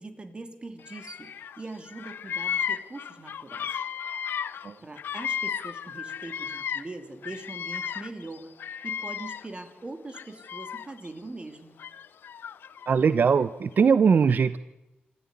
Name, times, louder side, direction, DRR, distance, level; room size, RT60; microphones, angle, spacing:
voice 1, 0.0-3.9 4.8-8.5 8.8-11.7, right 2 dB, 30° right, 7 dB, 2.9 m, -42 dB
Bird vocalization bird call bird song, 0.8-1.6 1.9-7.0 7.2-9.6 10.1-11.1 11.8-12.9, left 8 dB, 85° left, 0.7 m, -34 dB
voice 2, 12.9-14.6, right 6 dB, 60° right, 14 dB, 0.7 m, -21 dB
26.5 x 11.5 x 9.8 m, 0.96 s
wide cardioid pair, 95°, 4 cm